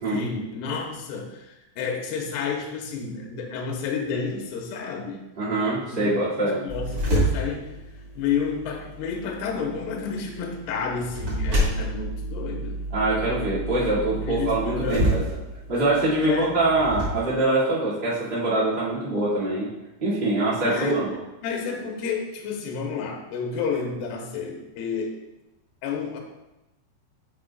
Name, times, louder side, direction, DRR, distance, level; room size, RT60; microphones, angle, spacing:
voice 1, 0.1-5.2 5.8-7.7 8.1-12.8 14.2-15.1 16.2-16.5 20.7-21.0 21.4-25.1 25.8-26.2, left 5 dB, 75° left, 1 dB, 2.9 m, -30 dB
voice 2, 5.4-6.6 12.9-15.2 15.7-19.7 20.0-21.1, right 2 dB, 20° right, -11 dB, 1.4 m, -24 dB
sound 1, 6.7-17.1, right 1 dB, 65° right, 1.0 m, -29 dB
9.2 x 7.1 x 2.4 m, 0.97 s
omnidirectional pair, 5.0 m